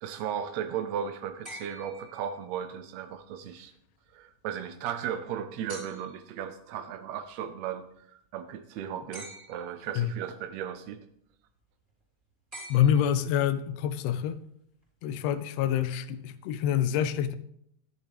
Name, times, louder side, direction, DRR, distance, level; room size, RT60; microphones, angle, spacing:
voice 1, 0.0-3.7 4.1-11.1, right 8 dB, 75° right, 8 dB, 1.7 m, -36 dB
sound 1, 1.4-2.8 5.7-6.3 9.1-9.9 12.5-13.6 15.1-15.2, right 1 dB, 15° right, 4.0 m, -46 dB
voice 2, 12.7-14.4 15.0-17.3, left 10 dB, 75° left, 11 dB, 1.6 m, -26 dB
13.5 x 11.0 x 3.5 m, 0.72 s
omnidirectional pair, 3.4 m